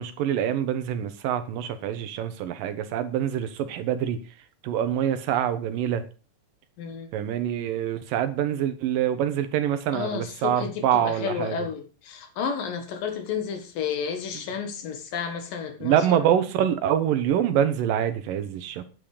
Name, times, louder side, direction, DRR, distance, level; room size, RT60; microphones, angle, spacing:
voice 1, 0.0-4.2 4.6-6.0 7.1-11.7 15.8-18.9, right 10 dB, 85° right, 2.8 m, -25 dB
voice 2, 6.8-7.1 9.9-16.2, left 6 dB, 85° left, 3.4 m, -31 dB
9.5 x 9.1 x 5.1 m
omnidirectional pair, 3.8 m